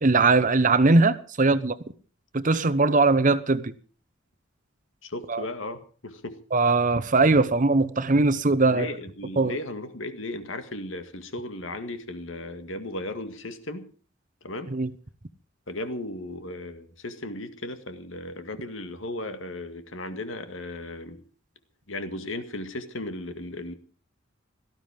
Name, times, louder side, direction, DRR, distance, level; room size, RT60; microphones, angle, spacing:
voice 1, 0.0-1.8 2.3-3.7 5.3-5.4 6.5-8.9 9.4-9.6 14.7-14.9, right 3 dB, 40° right, 0.9 m, -20 dB
voice 2, 5.0-6.4 8.7-13.9 14.4-14.7 15.7-21.2 21.9-23.7, left 2 dB, 70° left, 2.0 m, -36 dB
17.5 x 13.5 x 5.2 m
head